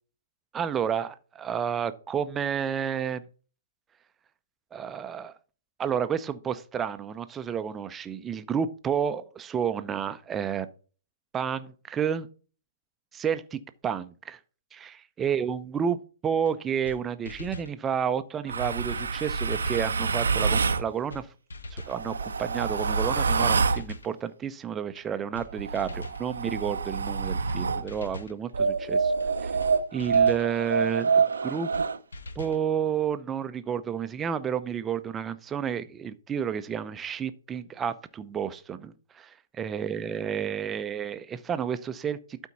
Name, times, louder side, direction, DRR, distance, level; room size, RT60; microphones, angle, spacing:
voice 1, 0.5-3.2 4.7-5.3 5.8-10.7 11.3-12.3 13.1-14.4 14.7-21.3 21.7-29.1 29.4-29.5 29.9-31.7 32.4-42.2, right 8 dB, 15° right, 0.6 m, -31 dB
sound 1, 16.5-16.6 16.8-17.0 17.3-17.7 18.6-18.7 19.0-19.1 19.4-19.9 20.7-20.8 21.1-21.2 21.5-22.0 22.8-22.9 23.2-23.4 23.6-24.1 25.0-25.1 25.3-25.5 25.7-26.2 27.1-27.2 27.5-27.6 27.9-28.4 29.2-29.3 29.6-29.7 30.0-30.5 31.3-31.4 31.7-31.9 32.1-32.6, left 1 dB, 70° left, 1.0 m, -41 dB
sound 2, 18.5-20.9 21.8-23.9 25.5-27.9 28.5-32.0, right 5 dB, 70° right, 0.6 m, -26 dB
12.0 x 4.5 x 4.1 m
figure-of-eight pair, 120°, 0 cm